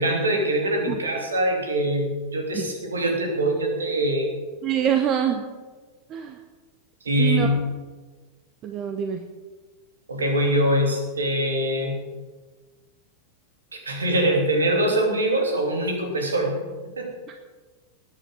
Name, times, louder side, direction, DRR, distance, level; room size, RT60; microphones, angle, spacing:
voice 1, 0.0-4.3 7.0-7.5 10.1-12.0 13.7-16.6 17.0-17.1, right 1 dB, 75° right, 2 dB, 3.1 m, -23 dB
voice 2, 4.6-5.5 6.1-6.4 7.2-7.5 8.6-9.2, right 9 dB, 35° right, 6 dB, 1.0 m, -25 dB
20.0 x 8.8 x 5.4 m, 1.3 s
figure-of-eight pair, 90°, 0 cm